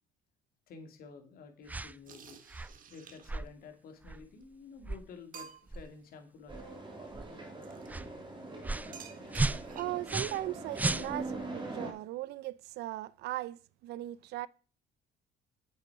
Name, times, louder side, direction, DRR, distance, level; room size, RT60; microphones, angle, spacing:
voice 1, 0.7-2.4 2.9-6.6, left 5 dB, 60° left, 2.4 m, -51 dB
sound 1, 1.7-1.9 2.5-2.8 3.3-3.5 4.1-4.2 4.8-5.1 5.7-5.9 6.5-6.7 7.1-7.3 7.9-8.1 8.6-8.9 9.3-10.5 10.7-11.4, right 2 dB, 10° right, 0.4 m, -34 dB
sound 2, 2.1-3.5 4.4-4.5 4.9-5.0 5.3-5.9 7.6-7.9 8.9-10.1, right 7 dB, 55° right, 1.5 m, -51 dB
sound 3, 6.5-11.9, right 2 dB, 30° right, 2.8 m, -42 dB
voice 2, 9.7-14.5, right 16 dB, 80° right, 0.5 m, -38 dB
8.5 x 7.6 x 4.8 m
cardioid pair, 110°, 17 cm